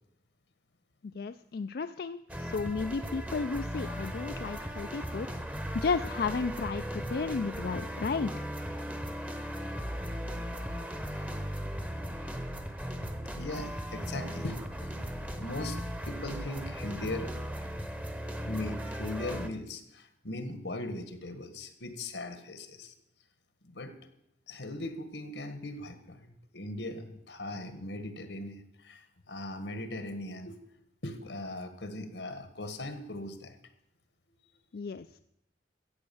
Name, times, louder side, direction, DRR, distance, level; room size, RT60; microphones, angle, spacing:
voice 1, 1.1-5.3 5.7-8.4 34.7-35.1, left 4 dB, 60° left, 9 dB, 0.4 m, -33 dB
sound 1, 2.3-19.5, equal, 10° right, 0.8 m, -37 dB
voice 2, 13.4-15.0 15.4-17.3 18.4-22.9 23.6-23.9 24.5-30.6 31.0-33.6, left 1 dB, 85° left, 9 dB, 1.7 m, -39 dB
14.0 x 8.3 x 7.1 m, 0.78 s
head